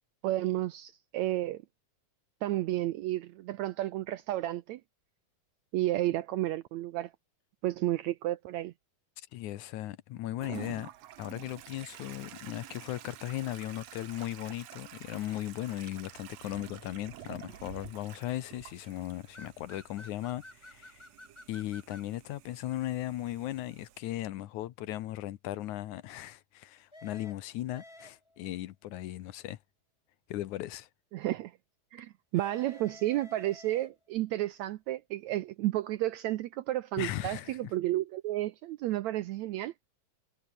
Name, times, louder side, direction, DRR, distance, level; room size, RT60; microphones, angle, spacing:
voice 1, 0.2-1.6 2.4-4.8 5.7-7.1 7.6-8.7 31.1-31.5 31.9-39.7, right 15 dB, 80° right, 1.7 m, -32 dB
voice 2, 9.2-10.9 11.2-21.0 21.5-29.6 30.3-30.9 37.0-37.6, left 14 dB, 70° left, 2.2 m, -37 dB
Toilet flush, 10.4-24.0, right 12 dB, 60° right, 2.0 m, -50 dB
sound 1, 19.3-22.1 26.9-28.5 32.3-34.2, left 1 dB, 10° left, 2.2 m, -52 dB
omnidirectional pair, 3.8 m